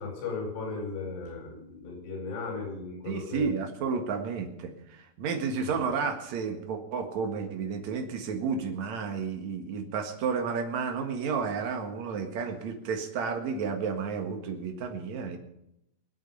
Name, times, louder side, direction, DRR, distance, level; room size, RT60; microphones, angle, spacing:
voice 1, 0.0-3.5 5.6-5.8, left 4 dB, 85° left, 1 dB, 7.7 m, -36 dB
voice 2, 3.1-15.4, right 5 dB, 55° right, 4 dB, 2.1 m, -32 dB
23.5 x 8.4 x 5.6 m, 0.81 s
omnidirectional pair, 5.4 m